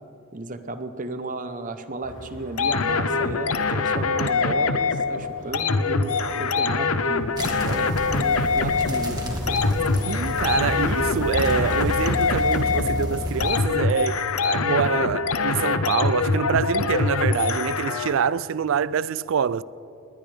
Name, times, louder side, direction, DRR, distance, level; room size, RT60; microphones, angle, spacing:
voice 1, 0.3-9.8, right 2 dB, 35° right, 0.8 m, -34 dB
sound 1, 2.0-7.5, right 1 dB, 55° left, 3.9 m, -44 dB
sound 2, 2.6-18.3, left 4 dB, 80° left, 0.7 m, -24 dB
sound 3, 7.4-13.6, equal, 20° right, 1.8 m, -30 dB
voice 2, 10.0-19.6, right 7 dB, 60° right, 0.3 m, -25 dB
20.0 x 19.0 x 3.4 m
head